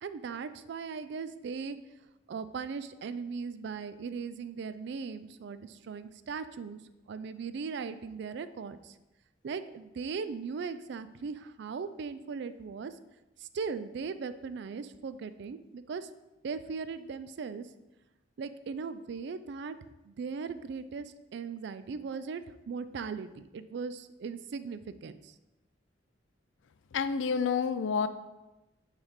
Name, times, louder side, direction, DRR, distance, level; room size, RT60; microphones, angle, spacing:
voice 1, 0.0-1.8 2.3-6.8 7.1-8.9 9.4-12.9 13.4-16.1 16.4-17.7 18.4-19.7 20.1-25.3, right 5 dB, 65° right, 13 dB, 0.4 m, -38 dB
voice 2, 26.9-28.1, left 6 dB, 80° left, 12 dB, 0.4 m, -28 dB
6.3 x 3.4 x 5.0 m, 1.0 s
head